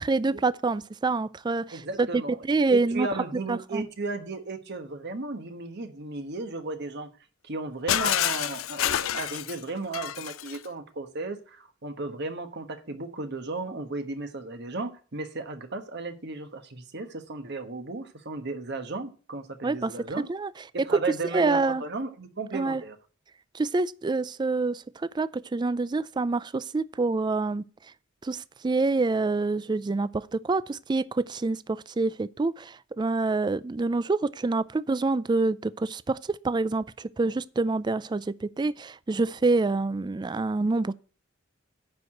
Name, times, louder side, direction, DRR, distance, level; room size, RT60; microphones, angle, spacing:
voice 1, 0.0-3.1 3.5-3.9 19.6-19.9 20.3-20.5 21.3-21.8 22.5-22.8 23.5-27.6 28.2-40.9, right 3 dB, 20° right, 0.3 m, -27 dB
voice 2, 1.7-7.1 7.4-20.3 20.7-23.0, right 3 dB, 60° right, 1.2 m, -35 dB
Shatter, 7.9-10.7, left 11 dB, 90° left, 0.5 m, -28 dB
9.5 x 4.8 x 7.6 m
head